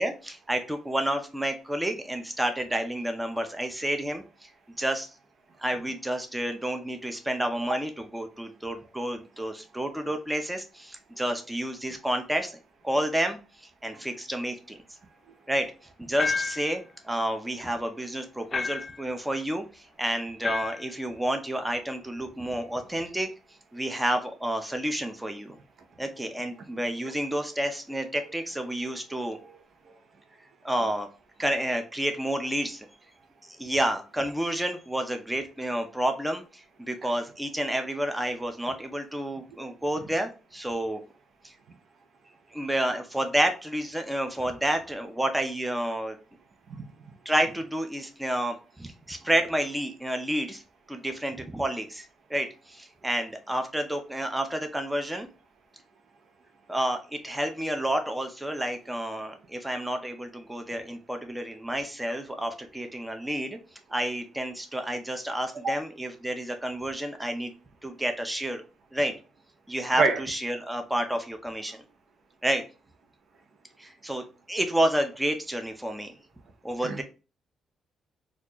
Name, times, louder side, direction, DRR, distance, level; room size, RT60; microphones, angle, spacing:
voice 1, 0.0-4.5 4.8-5.1 5.6-12.5 12.8-13.4 13.8-14.8 15.5-15.7 16.0-23.3 23.7-25.6 26.0-29.4 30.6-31.1 31.4-32.9 33.6-41.0 41.4-41.5 42.5-46.2 47.3-50.6 50.9-55.3 56.7-63.6 63.9-67.5 67.8-68.6 68.9-69.1 69.7-71.8 72.4-72.6 73.8-76.1 76.6-77.0, right 1 dB, 10° right, 0.6 m, -30 dB
voice 2, 7.7-7.8 13.9-14.0 65.6-65.7 70.0-70.2 76.8-77.0, right 4 dB, 55° right, 0.6 m, -25 dB
sound 1, 16.2-16.7 18.5-19.0 20.4-20.9, left 4 dB, 40° left, 0.3 m, -30 dB
4.2 x 2.4 x 2.9 m
cardioid pair, 90°, 0 cm